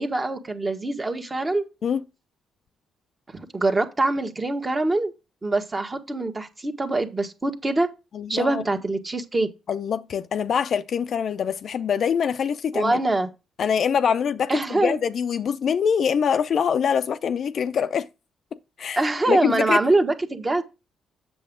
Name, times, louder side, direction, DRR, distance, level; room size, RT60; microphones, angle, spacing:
voice 1, 0.0-1.6 3.3-5.1 5.4-7.9 8.3-9.5 12.7-13.3 14.5-15.0 19.0-20.6, right 2 dB, 25° right, 1.3 m, -24 dB
voice 2, 8.1-8.6 9.7-13.0 13.6-18.1 18.8-19.0 19.3-19.8, left 7 dB, 55° left, 0.5 m, -24 dB
7.7 x 6.9 x 3.7 m
cardioid pair, 90°, 0 cm